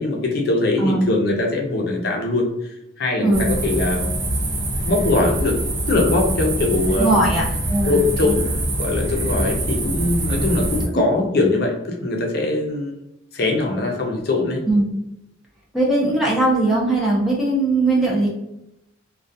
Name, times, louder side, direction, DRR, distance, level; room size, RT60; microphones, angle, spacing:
voice 1, 0.0-2.5 3.0-4.1 4.9-5.6 5.9-7.1 7.9-8.5 8.8-12.9 13.3-14.6, left 2 dB, 55° left, 1 dB, 0.5 m, -21 dB
sound 1, 3.3-10.9, right 1 dB, 65° right, 0.8 m, -24 dB
voice 2, 7.0-8.4 14.7-14.8 15.7-18.3, right 2 dB, ahead, -5 dB, 0.5 m, -19 dB
2.3 x 2.2 x 2.6 m, 0.85 s
head